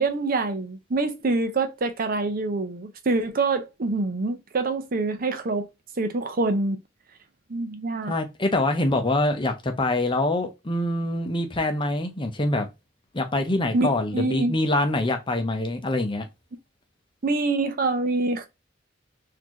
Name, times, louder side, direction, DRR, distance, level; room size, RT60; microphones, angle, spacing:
voice 1, 0.0-5.7 6.0-6.8 7.5-8.1 13.7-14.6 17.2-18.5, right 3 dB, 45° right, 0.6 m, -25 dB
voice 2, 8.1-12.7 13.1-16.3, left 2 dB, 25° left, 0.7 m, -25 dB
4.1 x 2.7 x 3.0 m
head